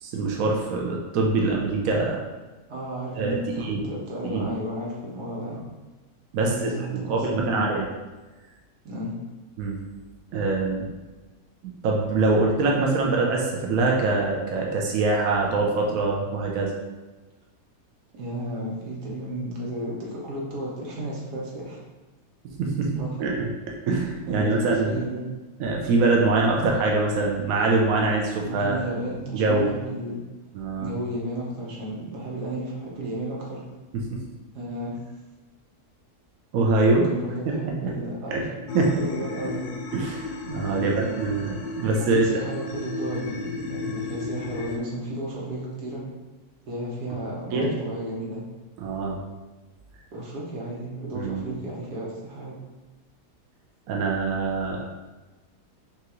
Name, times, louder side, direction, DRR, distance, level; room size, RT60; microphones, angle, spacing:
voice 1, 0.0-2.2 3.2-3.8 4.2-4.5 6.3-6.5 7.1-7.9 9.6-9.8 10.3-10.9 11.8-16.7 22.6-22.9 23.2-23.5 23.9-25.0 25.6-28.9 29.3-29.7 30.5-30.9 34.1-34.2 36.5-37.1 37.6-37.9 38.3-38.4 38.7-38.9 39.9-42.3 47.5-47.7 48.8-49.2 51.1-51.5 53.9-54.9, right 3 dB, 70° right, -1 dB, 1.0 m, -24 dB
voice 2, 2.7-5.6 6.4-7.7 8.8-9.1 18.1-21.8 22.9-23.3 24.3-25.2 28.5-30.2 30.8-33.6 34.5-35.0 37.1-38.5 38.8-39.7 40.7-41.1 42.1-46.0 46.7-48.4 50.1-52.6, right 1 dB, 85° right, -4 dB, 1.6 m, -33 dB
sound 1, 38.7-44.8, left 3 dB, 80° left, 1.2 m, -34 dB
5.9 x 2.4 x 3.0 m, 1.2 s
omnidirectional pair, 1.6 m